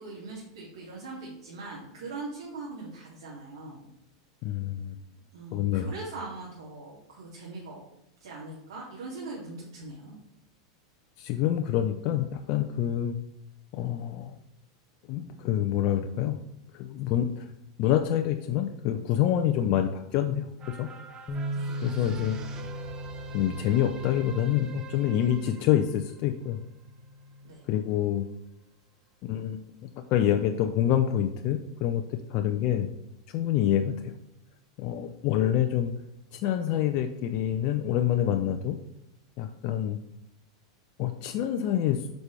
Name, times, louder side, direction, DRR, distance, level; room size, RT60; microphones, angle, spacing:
voice 1, 0.0-3.9 5.3-7.8 8.2-10.1 21.5-22.0 27.4-27.6, right 3 dB, 75° right, -6 dB, 2.6 m, -41 dB
voice 2, 4.4-5.0 5.5-5.9 11.2-13.2 13.7-14.4 15.1-16.4 16.7-17.5 17.8-20.9 21.8-22.4 23.3-26.6 27.7-28.3 29.2-29.7 30.1-32.9 33.3-34.2 34.8-35.9 36.3-38.8 39.4-40.0 41.0-42.1, left 11 dB, 50° left, 5 dB, 0.6 m, -27 dB
sound 1, 20.6-27.2 27.7-27.8, right 6 dB, 30° right, 1.0 m, -47 dB
Bass guitar, 21.3-27.5, equal, 20° left, 1.0 m, -39 dB
8.1 x 5.3 x 3.4 m, 0.84 s
hypercardioid pair, 105°, 2 cm